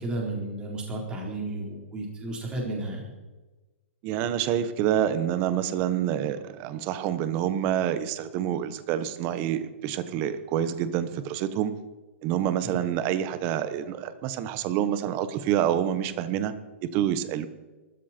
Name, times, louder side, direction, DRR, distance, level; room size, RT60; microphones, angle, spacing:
voice 1, 0.0-3.1 12.6-12.8, right 2 dB, 15° right, -1 dB, 4.1 m, -33 dB
voice 2, 4.0-11.7 12.2-16.5 16.9-17.5, right 10 dB, 30° right, 13 dB, 1.1 m, -27 dB
22.0 x 13.0 x 4.5 m, 1.2 s
hypercardioid pair, 165°, 7 cm